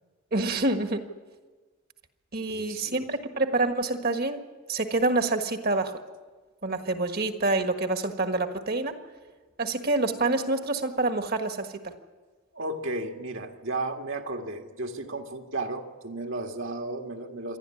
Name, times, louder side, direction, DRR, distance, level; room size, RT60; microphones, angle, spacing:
voice 1, 0.3-1.0 2.3-4.4 4.7-6.0 6.6-9.0 9.6-11.9, right 2 dB, 45° right, 6 dB, 1.5 m, -27 dB
voice 2, 2.5-3.1 12.5-17.6, right 2 dB, 65° right, 3 dB, 1.9 m, -34 dB
27.5 x 11.5 x 9.9 m, 1.3 s
head